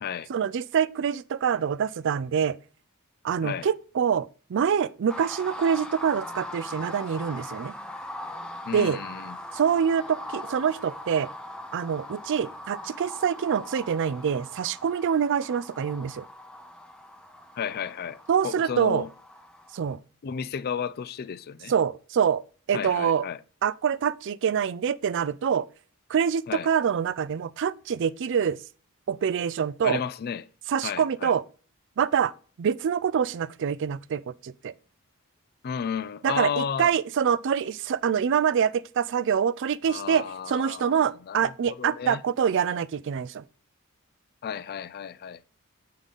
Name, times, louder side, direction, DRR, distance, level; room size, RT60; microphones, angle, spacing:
voice 1, 0.3-2.6 3.2-7.7 8.7-9.0 9.5-11.3 11.7-16.3 18.3-19.0 19.7-20.0 21.7-22.4 22.7-23.3 23.6-25.7 26.1-28.6 29.1-30.0 30.7-31.4 32.0-32.3 32.6-34.7 36.2-43.4, right 7 dB, 55° right, 0.3 m, -25 dB
sound 1, 5.1-20.0, left 1 dB, 5° left, 0.7 m, -41 dB
voice 2, 8.7-9.4 17.6-19.1 20.2-21.7 22.7-23.4 26.5-26.7 29.8-30.4 30.8-31.3 35.6-36.9 39.9-42.2 44.4-45.4, left 7 dB, 45° left, 0.3 m, -33 dB
8.1 x 3.8 x 5.3 m
head